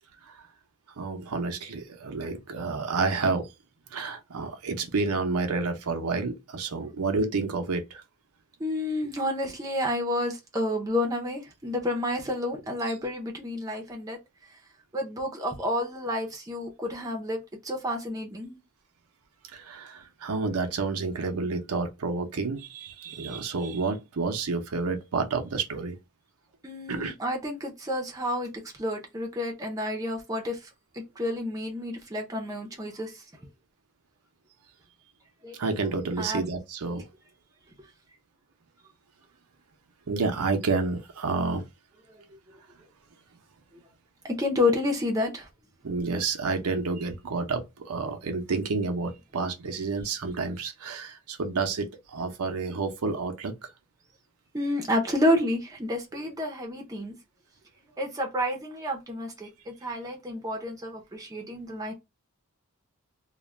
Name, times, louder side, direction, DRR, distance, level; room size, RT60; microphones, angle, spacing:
voice 1, 1.0-3.5 3.9-8.0 19.5-26.0 26.9-27.1 35.6-37.0 40.1-41.6 45.8-53.6, right 4 dB, 90° right, 0.6 m, -29 dB
voice 2, 8.6-14.2 14.9-18.6 26.6-33.2 35.4-35.6 36.2-36.4 42.2-42.3 44.2-45.5 54.5-57.2 58.0-61.9, left 1 dB, 15° right, 0.5 m, -30 dB
2.4 x 2.1 x 3.1 m
head